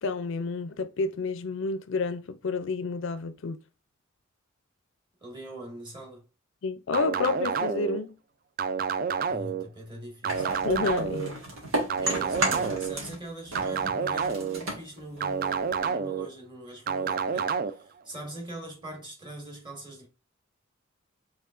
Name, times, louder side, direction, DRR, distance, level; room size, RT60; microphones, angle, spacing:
voice 1, 0.0-3.6 6.6-8.1 10.6-11.4, left 4 dB, 60° left, 0.4 m, -30 dB
voice 2, 5.2-6.2 9.3-10.6 12.0-20.1, right 1 dB, 20° right, 1.7 m, -42 dB
sound 1, 6.9-8.0 8.6-9.6 10.2-11.3 11.9-12.9 13.6-14.6 15.2-16.3 16.9-17.7, right 6 dB, 45° right, 0.3 m, -29 dB
sound 2, 10.3-13.2 13.5-15.9, right 1 dB, 85° right, 1.9 m, -33 dB
5.6 x 3.5 x 2.4 m
head